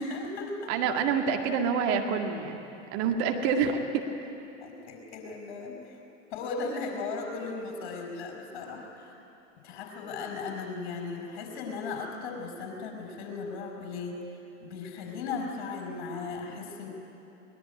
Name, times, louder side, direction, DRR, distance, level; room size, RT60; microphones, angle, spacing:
voice 1, 0.0-0.7 4.6-6.0 6.3-9.1 9.6-16.9, left 4 dB, 50° left, 2 dB, 5.5 m, -37 dB
voice 2, 0.7-2.6 2.9-4.3, right 6 dB, 40° right, 3 dB, 2.0 m, -27 dB
22.0 x 20.0 x 9.4 m, 2.9 s
figure-of-eight pair, 95°, 37 cm